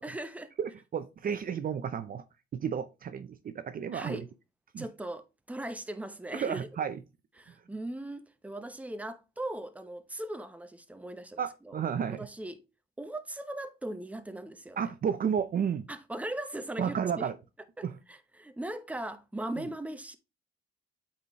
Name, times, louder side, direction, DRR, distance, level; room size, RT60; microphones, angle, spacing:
voice 1, 0.0-0.5 3.9-4.3 4.8-6.9 7.4-11.8 12.1-12.6 13.0-14.9 15.9-17.3 17.8-20.2, right 1 dB, 5° right, 0.8 m, -39 dB
voice 2, 0.6-2.2 2.5-4.2 4.7-4.9 6.3-7.0 11.4-12.3 14.8-15.9 16.8-17.4 17.8-18.0 19.6-19.7, right 7 dB, 45° right, 0.6 m, -32 dB
8.2 x 4.2 x 3.1 m
cardioid pair, 90°, 20 cm